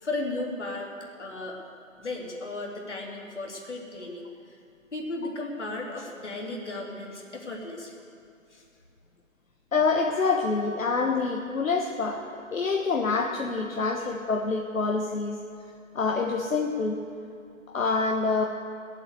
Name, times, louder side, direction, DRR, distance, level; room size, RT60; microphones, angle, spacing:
voice 1, 0.0-1.6 2.0-4.6 4.9-7.9 8.5-8.6, left 2 dB, 55° left, -1 dB, 3.0 m, -35 dB
voice 2, 9.7-15.4 15.9-17.0 17.7-18.4, left 4 dB, 75° left, 1 dB, 1.3 m, -26 dB
18.0 x 8.4 x 8.2 m, 2.5 s
hypercardioid pair, 180°, 41 cm